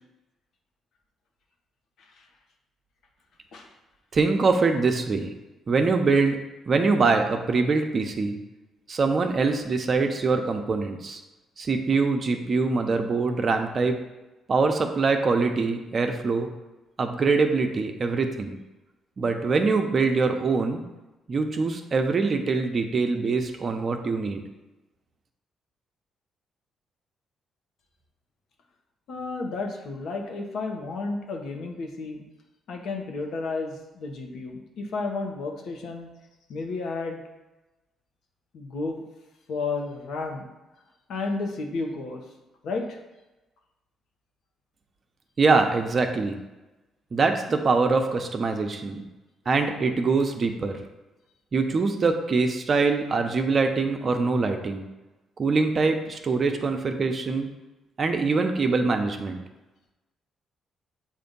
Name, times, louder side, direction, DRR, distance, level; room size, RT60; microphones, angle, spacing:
voice 1, 4.1-5.3 5.7-6.4 6.7-8.4 8.9-11.2 11.6-13.9 14.5-16.5 17.0-18.6 19.2-20.8 21.3-24.4 45.4-46.4 47.1-49.0 49.5-50.8 51.5-54.8 55.4-57.5 58.0-59.4, right 4 dB, 45° right, 5 dB, 0.7 m, -23 dB
voice 2, 29.1-32.2 32.7-36.1 36.5-37.2 38.5-39.0 39.5-40.5 41.1-42.2 42.6-43.0, left 3 dB, 70° left, 2 dB, 1.0 m, -32 dB
7.3 x 2.6 x 5.2 m, 1.1 s
cardioid pair, 90°, 0 cm